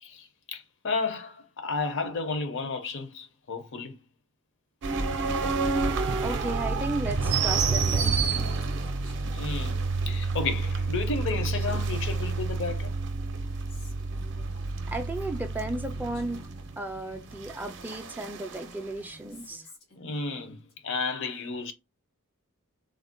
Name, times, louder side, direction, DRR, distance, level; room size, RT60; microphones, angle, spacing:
voice 1, 0.0-4.0 9.3-9.8 10.1-13.0 20.0-21.7, left 4 dB, 55° left, 0.5 m, -32 dB
sound 1, 4.8-18.7, right 4 dB, 55° right, 0.5 m, -29 dB
voice 2, 6.2-8.3 14.9-16.4 16.8-19.6, right 2 dB, 10° right, 0.3 m, -34 dB
Female speech woman speaking, 6.4-16.5 16.8-20.7, left 1 dB, 90° left, 1.5 m, -53 dB
3.5 x 2.1 x 2.5 m
head